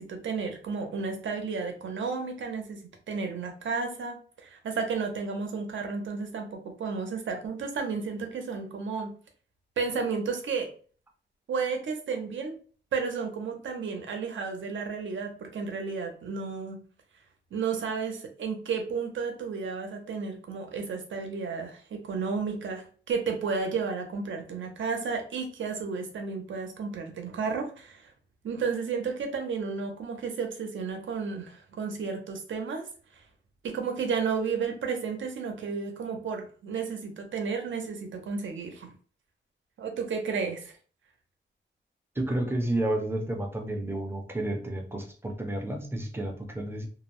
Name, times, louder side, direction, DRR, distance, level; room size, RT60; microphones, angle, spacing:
voice 1, 0.0-9.1 9.8-10.7 11.5-12.6 12.9-16.8 17.5-28.1 28.4-32.8 33.6-38.9 39.8-40.8, right 5 dB, 85° right, 4 dB, 0.6 m, -32 dB
voice 2, 42.2-46.9, right 1 dB, 10° right, 2 dB, 0.4 m, -31 dB
2.5 x 2.0 x 2.9 m, 0.42 s
wide cardioid pair, 180°, 19 cm